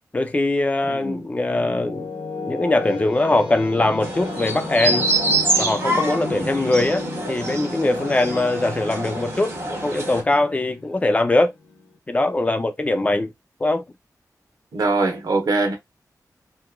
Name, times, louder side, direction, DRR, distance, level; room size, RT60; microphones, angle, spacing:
voice 1, 0.1-2.1 2.5-5.1 5.6-11.5 12.1-13.3 13.6-13.8, left 2 dB, 20° left, 0.3 m, -21 dB
voice 2, 0.9-1.2 14.7-15.8, right 3 dB, 75° right, 0.9 m, -22 dB
sound 1, 1.2-12.0, left 3 dB, 80° left, 0.9 m, -34 dB
sound 2, 4.0-10.2, right 2 dB, 40° right, 1.2 m, -25 dB
2.9 x 2.4 x 2.2 m
wide cardioid pair, 180°, 7 cm